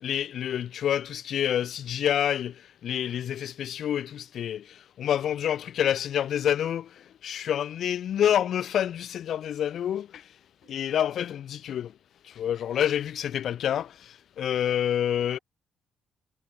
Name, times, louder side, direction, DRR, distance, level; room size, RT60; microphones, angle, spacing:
voice 1, 0.0-7.0 7.2-10.2 10.7-11.9 12.2-15.4, left 10 dB, 65° left, 0.4 m, -28 dB
voice 2, 10.6-11.0 14.5-15.4, right 13 dB, 80° right, 6.2 m, -61 dB
cardioid pair, 90°, 0 cm